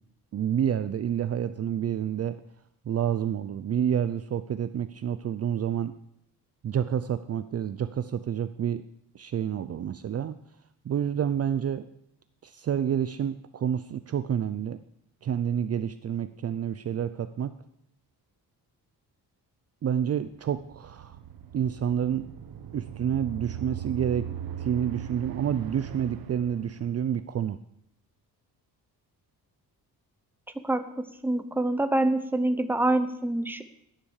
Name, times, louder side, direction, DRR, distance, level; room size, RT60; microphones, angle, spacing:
voice 1, 0.3-2.4 2.9-5.9 6.6-8.8 9.1-10.4 10.8-11.9 12.4-14.8 15.2-17.5 19.8-21.2 21.5-22.3 22.7-24.3 24.6-27.6, right 9 dB, 40° right, 12 dB, 0.6 m, -29 dB
sound 1, 20.3-27.2, right 9 dB, 60° right, 1.4 m, -39 dB
voice 2, 31.2-33.6, right 2 dB, 5° right, 9 dB, 0.9 m, -25 dB
15.5 x 10.5 x 6.5 m, 0.75 s
cardioid pair, 150°, 39 cm